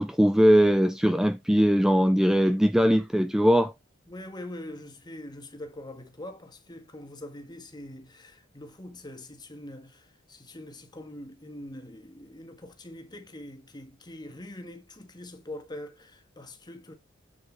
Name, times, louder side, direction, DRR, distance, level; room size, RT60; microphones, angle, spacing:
voice 1, 0.0-3.7, equal, 5° right, 0.4 m, -21 dB
voice 2, 4.1-16.9, left 1 dB, 20° left, 1.7 m, -43 dB
7.8 x 7.1 x 3.5 m
head